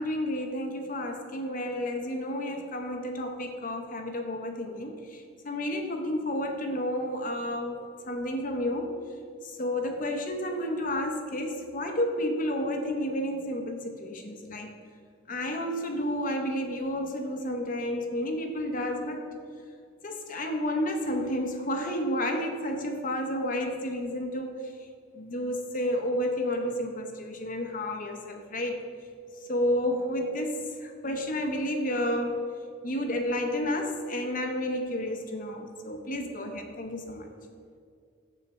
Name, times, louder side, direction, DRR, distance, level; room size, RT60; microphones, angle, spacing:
voice 1, 0.0-9.0 9.4-14.7 15.3-19.3 20.0-24.6 25.1-28.9 29.5-32.4 32.8-37.3, left 1 dB, 40° left, 4 dB, 0.7 m, -31 dB
6.6 x 6.4 x 4.2 m, 2.2 s
head